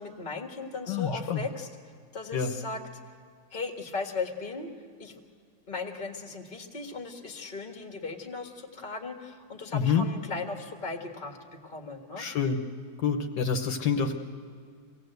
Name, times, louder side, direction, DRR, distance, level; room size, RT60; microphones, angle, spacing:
voice 1, 0.0-1.7 2.1-2.8 3.5-4.7 5.0-5.2 5.7-12.3, left 4 dB, 30° left, 4 dB, 1.8 m, -37 dB
voice 2, 0.9-1.4 2.3-2.5 9.7-10.1 12.2-12.6 13.0-14.1, left 6 dB, 70° left, 5 dB, 1.6 m, -27 dB
25.0 x 18.0 x 7.9 m, 2.1 s
omnidirectional pair, 2.0 m